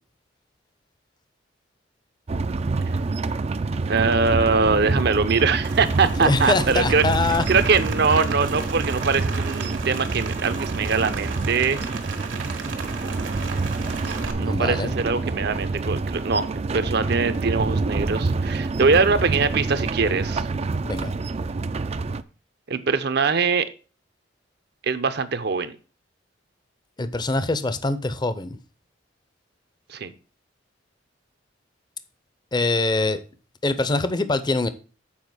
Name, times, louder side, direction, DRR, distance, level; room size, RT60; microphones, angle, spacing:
sound 1, 2.3-22.2, right 3 dB, 35° right, 0.4 m, -27 dB
voice 1, 3.9-7.0 7.5-11.8 14.4-20.5 22.7-23.7 24.8-25.7 29.9-30.1, right 4 dB, 60° right, 0.7 m, -22 dB
Rain, 5.6-14.3, right 4 dB, 80° right, 1.6 m, -36 dB
voice 2, 6.2-7.4 14.4-14.9 20.8-21.1 27.0-28.6 32.5-33.2 33.6-34.7, left 2 dB, 25° left, 0.6 m, -23 dB
7.3 x 4.7 x 6.1 m
head